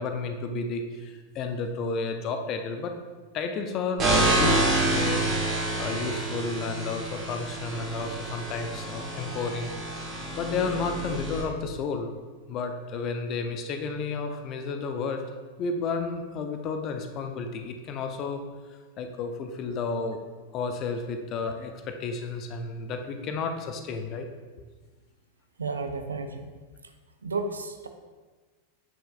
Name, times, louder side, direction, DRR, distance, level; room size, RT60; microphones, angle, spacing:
voice 1, 0.0-2.9 3.3-9.7 10.3-12.1 12.5-15.2 15.6-18.4 18.7-20.2 20.5-24.3, left 4 dB, 35° left, 5 dB, 0.7 m, -32 dB
sound 1, 4.0-11.4, right 2 dB, 30° right, 1.8 m, -28 dB
voice 2, 25.6-26.5 27.2-27.9, right 3 dB, 75° right, 7 dB, 0.5 m, -32 dB
7.6 x 6.7 x 2.5 m, 1.4 s
figure-of-eight pair, 90°, 0 cm